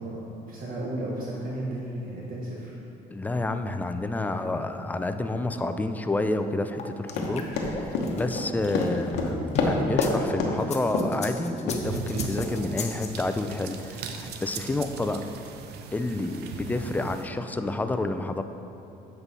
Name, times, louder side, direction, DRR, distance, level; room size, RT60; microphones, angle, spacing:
voice 1, 0.0-2.7, right 1 dB, 55° right, -4 dB, 1.1 m, -34 dB
voice 2, 3.1-15.3 15.9-18.4, left 2 dB, 10° left, 8 dB, 0.3 m, -29 dB
sound 1, 6.8-10.1 10.6-13.2, left 4 dB, 40° left, 0.7 m, -36 dB
Run, 7.1-10.1 10.4-10.6 10.9-11.2 11.7-11.8 12.4-12.5, left 4 dB, 85° left, 1.0 m, -27 dB
sound 2, 11.8-17.3, right 5 dB, 75° right, 0.6 m, -38 dB
8.0 x 5.4 x 4.1 m, 2.9 s
cardioid pair, 110°, 17 cm